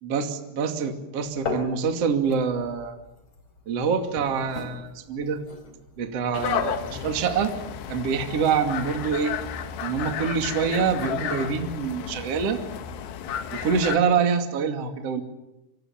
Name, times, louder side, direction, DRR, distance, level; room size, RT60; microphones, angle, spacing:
voice 1, 0.0-3.0 3.7-5.4 6.0-7.5 7.9-9.3 9.8-12.6 13.5-15.2, right 6 dB, 40° right, 5 dB, 2.7 m, -25 dB
sound 1, 1.2-6.6, left 3 dB, 35° left, 4.4 m, -38 dB
sound 2, 6.3-14.0, left 8 dB, 65° left, 3.3 m, -32 dB
27.5 x 24.5 x 7.3 m, 0.95 s
omnidirectional pair, 5.7 m